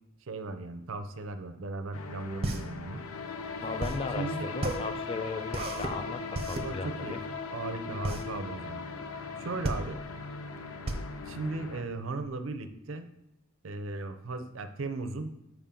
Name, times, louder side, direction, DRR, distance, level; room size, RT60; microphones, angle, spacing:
voice 1, 0.3-3.0 4.2-4.4 6.5-7.2 7.5-8.8 9.4-10.0 11.3-13.1 13.6-15.3, right 3 dB, 65° right, 9 dB, 0.5 m, -37 dB
sound 1, 1.9-11.8, left 4 dB, 85° left, 0.5 m, -39 dB
sound 2, 1.9-12.3, right 1 dB, 30° right, 0.7 m, -35 dB
voice 2, 3.6-7.2, left 4 dB, 25° left, 9 dB, 0.3 m, -37 dB
7.1 x 4.8 x 3.7 m, 0.84 s
head